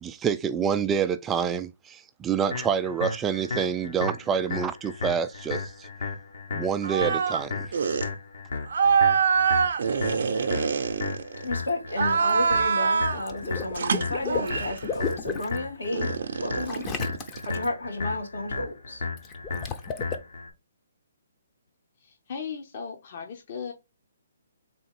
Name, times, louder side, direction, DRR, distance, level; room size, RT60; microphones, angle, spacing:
voice 1, 0.0-5.9 6.5-7.7, right 7 dB, 15° right, 0.3 m, -27 dB
sound 1, 2.5-20.5, left 4 dB, 65° left, 1.4 m, -35 dB
sound 2, 6.8-7.4 7.7-8.1 8.7-11.5 11.9-13.3 13.7-14.8 15.9-17.7, right 6 dB, 65° right, 0.7 m, -25 dB
voice 2, 11.4-16.1 16.4-16.9 17.4-19.0, left 2 dB, 85° left, 2.8 m, -32 dB
Water / Liquid, 13.1-15.6 16.6-17.7 19.2-20.1, left 6 dB, 20° left, 0.7 m, -34 dB
voice 3, 22.0-23.7, left 6 dB, 45° left, 0.9 m, -37 dB
3.9 x 3.1 x 4.4 m
hypercardioid pair, 145°, 0 cm